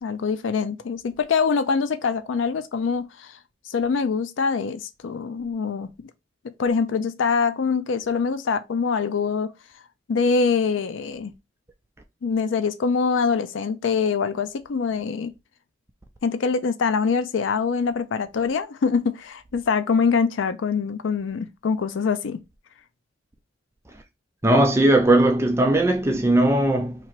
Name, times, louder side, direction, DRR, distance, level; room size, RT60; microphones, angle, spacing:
voice 1, 0.0-3.4 3.7-5.9 6.6-9.5 10.1-11.3 12.2-15.3 16.2-22.4, left 5 dB, 85° left, 0.4 m, -24 dB
voice 2, 24.4-27.0, right 1 dB, 15° right, 0.4 m, -18 dB
2.9 x 2.9 x 4.4 m
head